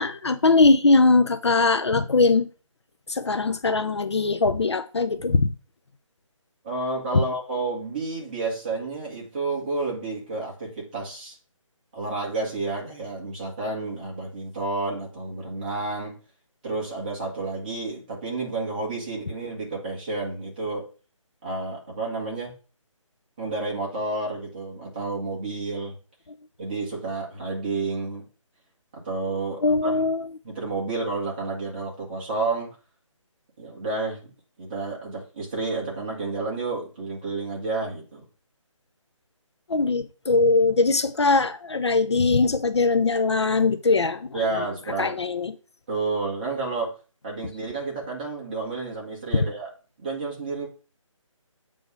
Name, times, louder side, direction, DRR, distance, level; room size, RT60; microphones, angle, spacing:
voice 1, 0.0-2.5 3.1-5.5 29.6-30.4 39.7-44.4 45.0-45.5, left 3 dB, 55° left, 0.7 m, -21 dB
voice 2, 6.6-11.3 11.9-16.2 16.6-20.9 21.4-22.5 23.4-25.9 26.6-28.2 28.9-30.0 30.4-32.7 33.6-34.3 34.6-38.2 44.3-45.1 45.9-46.9 47.2-49.7 50.0-50.7, right 3 dB, 15° right, 1.6 m, -30 dB
8.1 x 3.6 x 6.1 m
hypercardioid pair, 175°, 17 cm